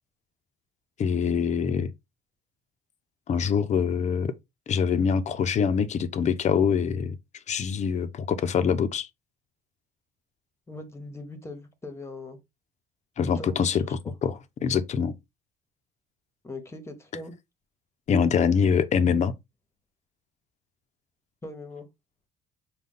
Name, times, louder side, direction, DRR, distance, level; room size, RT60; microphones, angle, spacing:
voice 1, 1.0-1.9 3.3-4.3 4.7-7.2 7.5-9.1 13.2-15.1 18.1-19.3, left 6 dB, 45° left, 0.6 m, -24 dB
voice 2, 10.7-12.4 13.2-13.9 16.4-17.3 21.4-21.9, left 2 dB, 15° left, 1.0 m, -41 dB
5.2 x 2.3 x 3.7 m
cardioid pair, 110°, 17 cm